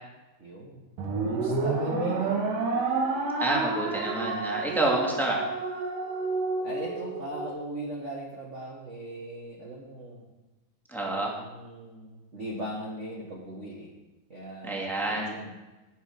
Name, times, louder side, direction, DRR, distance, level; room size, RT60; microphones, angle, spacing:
voice 1, 0.4-0.8 1.2-2.4 6.6-10.3 11.0-13.9 14.3-15.5, right 1 dB, 45° right, -3 dB, 0.9 m, -39 dB
sound 1, 1.0-7.5, right 3 dB, 80° right, 3.2 m, -29 dB
voice 2, 3.4-5.4 10.9-11.3 14.6-15.3, right 2 dB, ahead, -2 dB, 1.5 m, -28 dB
18.0 x 6.1 x 5.3 m, 1.1 s
omnidirectional pair, 3.7 m